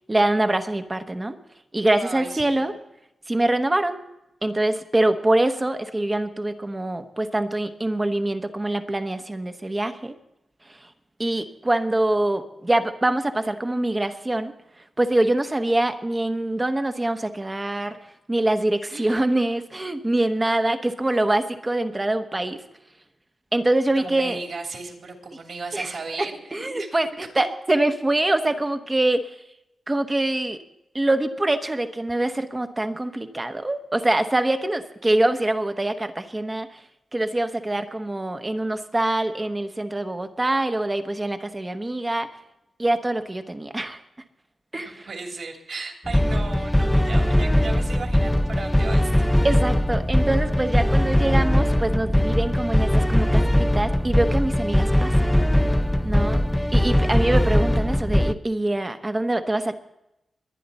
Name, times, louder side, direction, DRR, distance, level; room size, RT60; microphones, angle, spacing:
voice 1, 0.1-1.4 1.7-2.7 3.3-4.0 4.4-10.1 11.2-14.5 15.0-18.0 18.3-22.6 23.5-24.4 25.7-25.9 26.2-29.2 29.9-30.6 30.9-36.7 37.1-42.3 42.8-44.0 44.7-45.1 49.4-55.3 56.0-56.4 56.7-59.8, right 1 dB, 15° right, 8 dB, 1.0 m, -24 dB
voice 2, 1.9-2.7 18.9-19.5 23.9-26.9 27.3-27.5 44.8-49.1 56.0-56.6, right 4 dB, 55° right, 2 dB, 2.9 m, -36 dB
sound 1, 46.1-58.3, equal, 5° left, 0.4 m, -20 dB
22.0 x 10.0 x 4.1 m, 0.87 s
wide cardioid pair, 165°, 0 cm